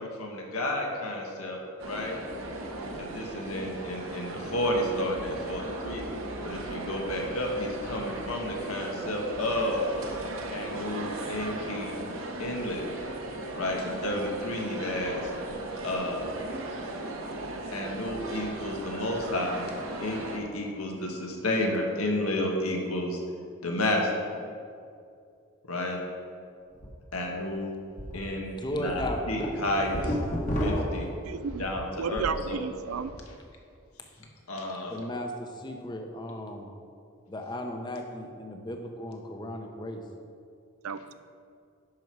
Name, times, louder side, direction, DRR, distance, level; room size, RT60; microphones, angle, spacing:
voice 1, 0.0-2.2 3.0-6.0 6.4-9.9 10.5-12.0 12.4-12.9 13.5-15.3 15.8-16.3 17.7-19.7 20.0-23.2 23.6-24.3 25.7-26.0 27.1-27.7 28.1-30.1 30.6-31.1 31.6-32.6 34.5-35.0, left 1 dB, 90° left, 0 dB, 1.6 m, -31 dB
sound 1, 1.8-20.4, right 2 dB, 65° right, 1.0 m, -37 dB
sound 2, 26.7-26.9 27.3-27.4 28.0-28.2 28.6-32.4 32.8-33.2, equal, 35° left, 1.3 m, -32 dB
voice 2, 28.5-29.4 34.2-34.3 34.9-36.7 37.3-40.0, left 1 dB, 20° left, 4 dB, 0.8 m, -36 dB
voice 3, 31.2-31.7 32.0-33.1 40.8-41.1, right 6 dB, 80° right, 12 dB, 0.4 m, -33 dB
10.5 x 6.1 x 4.7 m, 2.4 s
head